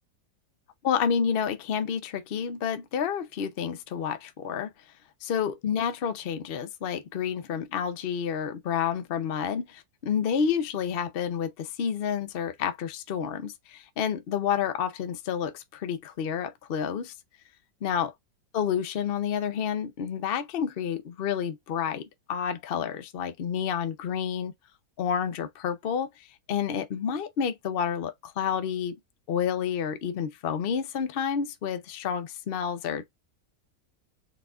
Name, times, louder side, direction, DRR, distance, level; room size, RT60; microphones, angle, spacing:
voice 1, 0.8-4.7 5.2-17.1 17.8-18.1 18.5-24.5 25.0-29.0 29.3-33.0, left 7 dB, 60° left, 0.6 m, -29 dB
4.2 x 4.0 x 2.5 m
omnidirectional pair, 1.8 m